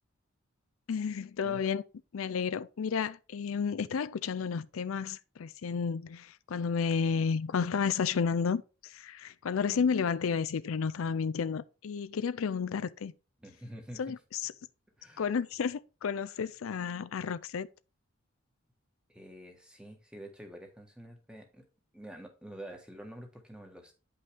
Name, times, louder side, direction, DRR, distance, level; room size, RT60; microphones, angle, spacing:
voice 1, 0.9-1.8 2.1-13.1 14.0-14.5 15.2-17.7, left 6 dB, 85° left, 0.4 m, -32 dB
voice 2, 13.4-14.0 15.0-15.3 19.1-21.7 21.9-23.9, right 1 dB, 5° right, 1.3 m, -47 dB
9.2 x 5.5 x 3.4 m
head